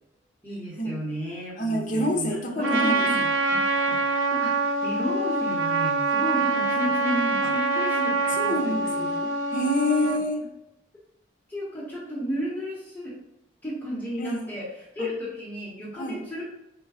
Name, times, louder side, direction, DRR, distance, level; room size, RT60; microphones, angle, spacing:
voice 1, 0.4-3.2 3.5-9.1 11.5-13.1 13.6-16.4, equal, 10° left, -7 dB, 1.0 m, -33 dB
voice 2, 1.6-3.3 7.4-7.5 8.3-10.4 14.2-14.5 15.0-15.1 15.9-16.2, left 1 dB, 40° left, 1 dB, 0.7 m, -28 dB
Trumpet, 2.6-10.2, right 3 dB, 85° right, 0.6 m, -25 dB
4.5 x 2.2 x 4.7 m, 0.87 s
head